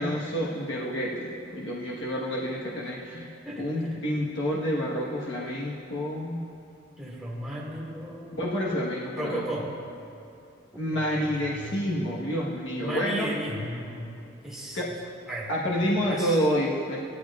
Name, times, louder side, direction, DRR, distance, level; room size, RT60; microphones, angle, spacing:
voice 1, 0.0-3.3 3.6-6.4 8.3-9.4 10.8-13.3 14.7-14.9 15.5-17.0, equal, 65° left, -5 dB, 1.3 m, -28 dB
voice 2, 3.4-4.0 7.0-8.4 9.1-9.8 10.9-11.8 12.8-14.2 14.4-14.9 15.3-15.5 16.1-16.4, right 1 dB, ahead, -6 dB, 2.1 m, -35 dB
16.5 x 13.0 x 2.4 m, 2.6 s
head